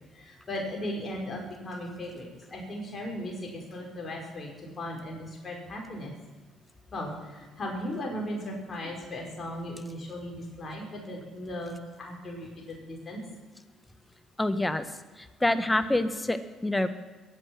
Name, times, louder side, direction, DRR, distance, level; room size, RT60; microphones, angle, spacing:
voice 1, 0.1-6.1 6.9-13.2, left 1 dB, 40° left, -1 dB, 5.3 m, -37 dB
voice 2, 14.4-14.9 15.2-16.9, left 1 dB, 15° left, 11 dB, 1.5 m, -27 dB
22.0 x 9.3 x 6.2 m, 1.3 s
hypercardioid pair, 55°, 0 cm